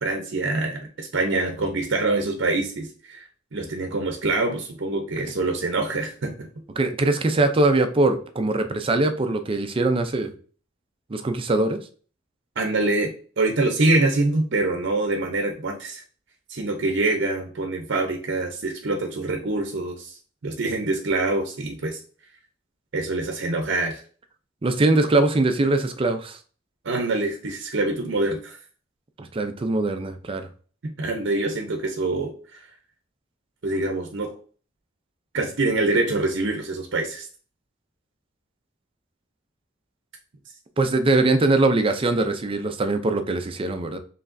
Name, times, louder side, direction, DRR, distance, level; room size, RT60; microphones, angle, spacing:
voice 1, 0.0-3.2 3.5-6.5 12.6-16.0 16.5-20.2 20.4-22.0 22.9-24.0 26.8-28.6 30.8-32.6 33.6-34.3 35.3-37.3, right 2 dB, 65° right, 0.7 m, -25 dB
voice 2, 6.8-10.3 11.1-11.8 24.6-26.4 29.2-30.5 40.8-44.0, right 2 dB, 30° right, 0.4 m, -22 dB
4.8 x 3.2 x 2.6 m
head